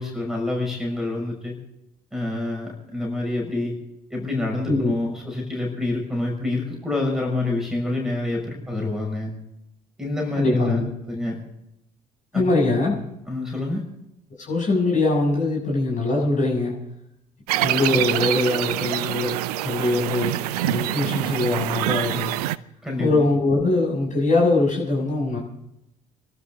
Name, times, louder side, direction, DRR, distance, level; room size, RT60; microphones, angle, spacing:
voice 1, 0.0-1.5 2.1-3.8 4.1-9.3 10.0-10.8 11.1-11.4 12.3-12.4 13.3-13.8 22.8-23.2, left 2 dB, ahead, 0 dB, 6.1 m, -27 dB
voice 2, 10.3-10.9 12.3-13.0 14.4-16.7 17.6-19.4 19.6-20.3 20.6-22.4 23.0-25.4, left 2 dB, 35° left, -3 dB, 7.2 m, -22 dB
sound 1, 17.5-22.6, right 15 dB, 70° right, 0.5 m, -25 dB
27.5 x 12.5 x 3.9 m, 0.82 s
figure-of-eight pair, 50°, 20 cm